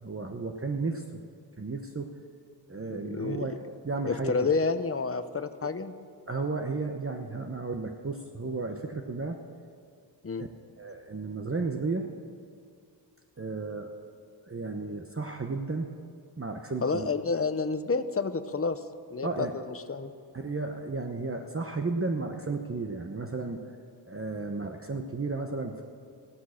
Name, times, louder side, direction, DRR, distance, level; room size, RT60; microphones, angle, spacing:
voice 1, 0.0-1.2 1.6-2.1 2.7-3.6 3.8-4.5 6.3-9.4 10.4-10.5 10.8-12.1 13.4-13.9 14.5-15.9 16.4-17.1 19.2-19.5 20.3-23.6 24.1-25.8, right 3 dB, 30° right, 4 dB, 1.0 m, -33 dB
voice 2, 3.0-3.4 4.1-5.9 10.2-10.4 16.8-18.8 19.1-20.1, left 4 dB, 30° left, 10 dB, 0.8 m, -29 dB
15.5 x 12.5 x 6.5 m, 2.3 s
wide cardioid pair, 100°, 43 cm